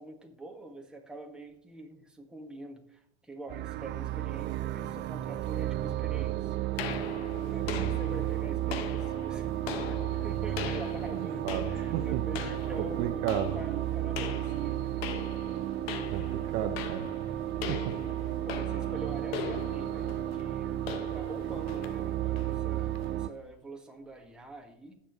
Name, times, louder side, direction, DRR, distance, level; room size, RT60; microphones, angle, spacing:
voice 1, 0.0-6.6 7.5-14.9 17.5-17.7 18.4-24.9, right 1 dB, 5° right, 1 dB, 1.8 m, -45 dB
sound 1, 3.5-23.3, right 13 dB, 35° right, 0.6 m, -33 dB
sound 2, 6.8-23.1, left 9 dB, 70° left, 1.2 m, -42 dB
voice 2, 11.1-11.7 11.9-12.2 12.8-13.6 16.1-17.1 17.7-18.0, right 10 dB, 50° right, 8 dB, 1.0 m, -33 dB
17.5 x 7.1 x 3.2 m, 0.69 s
hypercardioid pair, 115°, 31 cm